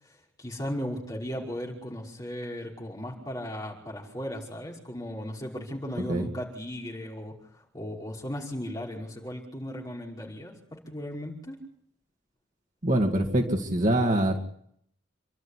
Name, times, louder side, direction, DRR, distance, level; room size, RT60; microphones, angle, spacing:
voice 1, 0.4-11.6, equal, 20° left, -2 dB, 5.4 m, -36 dB
voice 2, 12.8-14.4, right 1 dB, 40° right, 3 dB, 2.3 m, -24 dB
28.5 x 12.5 x 10.0 m, 0.70 s
head